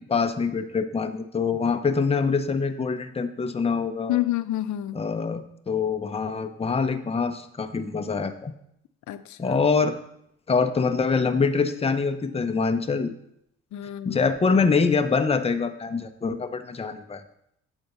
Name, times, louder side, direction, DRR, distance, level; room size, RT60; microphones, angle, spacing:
voice 1, 0.0-4.2 4.9-8.5 9.4-10.0 10.5-13.1 14.0-17.2, left 5 dB, 20° left, 0.7 m, -24 dB
voice 2, 4.1-5.0 9.1-9.6 13.7-14.2, left 14 dB, 70° left, 0.6 m, -28 dB
8.2 x 4.3 x 6.6 m
cardioid pair, 90°, 30 cm